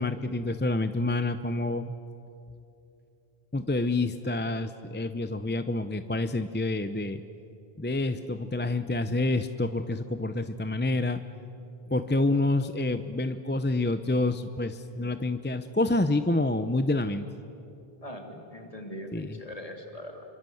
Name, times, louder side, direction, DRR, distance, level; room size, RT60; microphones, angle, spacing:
voice 1, 0.0-1.9 3.5-7.2 7.8-11.2 11.9-17.3 19.1-19.4, left 2 dB, 15° left, 10 dB, 0.5 m, -28 dB
voice 2, 18.0-20.2, left 1 dB, 35° left, 3 dB, 2.9 m, -41 dB
27.0 x 24.5 x 7.8 m, 2.7 s
omnidirectional pair, 1.0 m